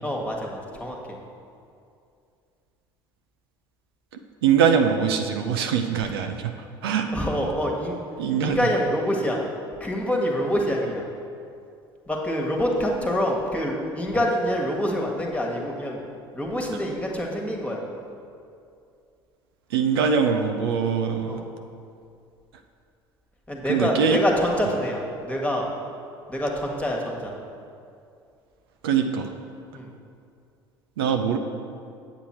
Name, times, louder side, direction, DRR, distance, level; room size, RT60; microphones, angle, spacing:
voice 1, 0.0-1.0 7.1-8.0 8.4-9.4 9.8-11.0 12.1-16.0 16.3-17.8 21.2-21.4 23.5-25.7 26.3-27.3 29.7-29.9, equal, 10° left, -1 dB, 1.6 m, -26 dB
voice 2, 4.4-6.5 6.8-7.1 8.2-8.6 19.7-21.4 23.7-24.2 28.8-29.3 31.0-31.4, right 7 dB, 70° right, 5 dB, 0.6 m, -22 dB
8.3 x 7.9 x 4.4 m, 2.5 s
figure-of-eight pair, 65°, 13 cm